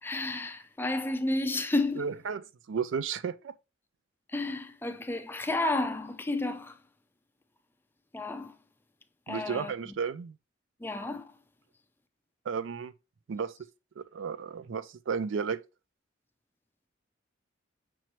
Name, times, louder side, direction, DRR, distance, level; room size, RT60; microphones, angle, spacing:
voice 1, 0.0-2.1 4.3-6.8 8.1-8.6 9.3-9.9 10.8-11.4, left 2 dB, 10° left, 0.4 m, -31 dB
voice 2, 2.0-3.5 9.3-10.3 12.5-12.9 13.3-13.5 14.0-15.6, right 6 dB, 85° right, 0.4 m, -33 dB
6.0 x 3.0 x 3.0 m
head